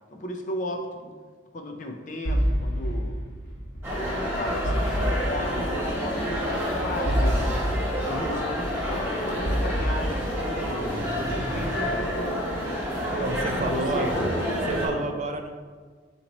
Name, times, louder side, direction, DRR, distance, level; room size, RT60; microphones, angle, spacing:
voice 1, 0.1-1.1 1.5-3.2 3.9-7.6 8.0-12.8 13.6-14.1 14.7-15.2, left 1 dB, 40° left, 3 dB, 0.5 m, -35 dB
sound 1, 2.2-11.8, equal, 70° left, 1.3 m, -29 dB
sound 2, 3.8-14.9, equal, 10° right, 0.9 m, -28 dB
voice 2, 13.1-14.1 14.6-15.6, right 2 dB, 35° right, 5 dB, 0.3 m, -30 dB
4.2 x 3.0 x 4.0 m, 1.5 s
head